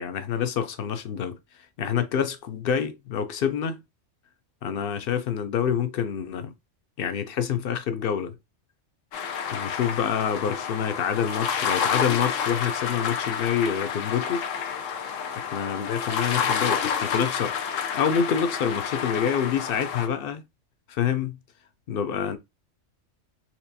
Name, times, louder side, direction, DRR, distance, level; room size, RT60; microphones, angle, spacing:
voice 1, 0.0-1.4 1.8-3.8 4.6-6.5 7.0-8.4 9.5-14.4 15.4-17.5 17.9-20.4 20.9-21.4 21.9-22.4, left 8 dB, 60° left, 0.7 m, -27 dB
sound 1, 9.1-20.1, left 7 dB, 90° left, 1.1 m, -29 dB
4.4 x 2.5 x 2.7 m
omnidirectional pair, 1.3 m